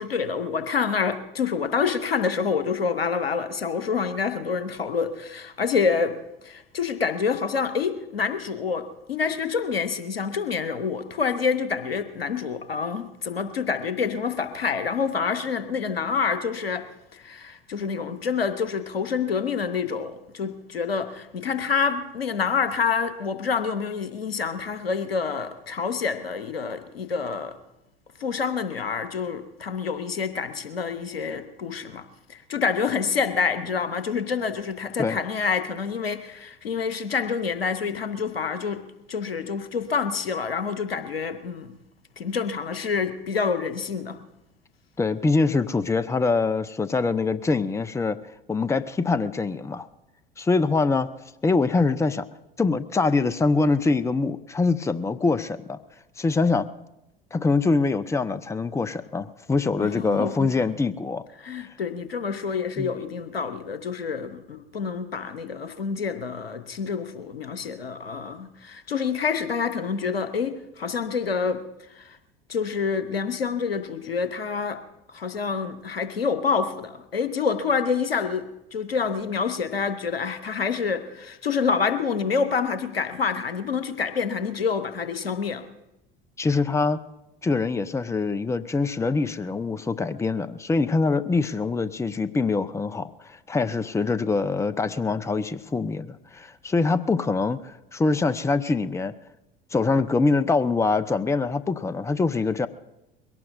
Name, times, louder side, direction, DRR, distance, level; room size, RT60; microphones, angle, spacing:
voice 1, 0.0-6.2 6.4-16.9 17.1-27.6 28.2-38.8 39.1-41.8 42.2-44.2 59.8-60.5 61.4-71.6 71.9-72.2 72.5-74.8 75.1-85.6, left 5 dB, 90° left, 11 dB, 1.0 m, -27 dB
voice 2, 45.0-48.2 48.5-49.9 50.4-51.1 51.4-52.3 52.6-55.8 56.2-56.7 57.3-61.2 62.8-62.9 86.4-87.0 87.4-99.1 99.7-102.7, left 3 dB, 10° left, 13 dB, 0.6 m, -24 dB
22.0 x 17.5 x 2.7 m, 0.92 s
figure-of-eight pair, 70°, 29 cm